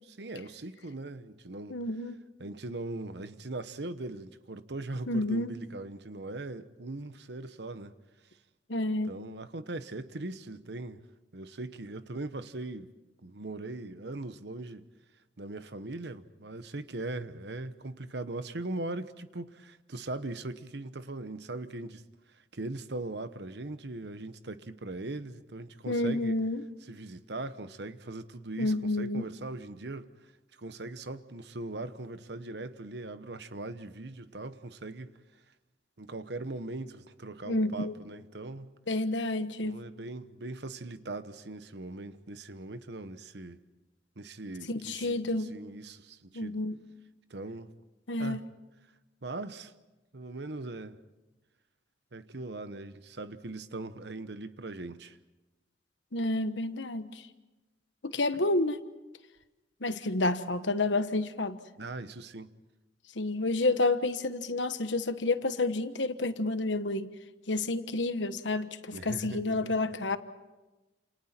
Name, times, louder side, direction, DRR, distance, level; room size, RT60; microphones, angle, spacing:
voice 1, 0.0-1.8 2.4-7.9 9.0-11.0 11.3-12.9 13.2-14.9 15.4-22.0 22.3-26.4 26.8-30.1 30.6-35.1 36.0-38.7 39.6-43.6 44.2-46.6 47.3-47.7 48.2-48.5 49.2-49.7 50.1-51.0 52.1-55.2 58.3-58.4 61.8-62.5 68.9-69.8, right 2 dB, 65° right, 1.0 m, -40 dB
voice 2, 1.7-2.2 5.1-5.5 8.7-9.2 25.9-26.6 28.6-29.3 37.5-37.9 38.9-39.8 44.7-45.5 46.3-46.8 48.1-48.4 56.1-57.1 58.0-58.8 59.8-61.6 63.2-67.1 67.5-70.2, left 2 dB, 85° left, 1.3 m, -29 dB
29.5 x 28.0 x 4.4 m
head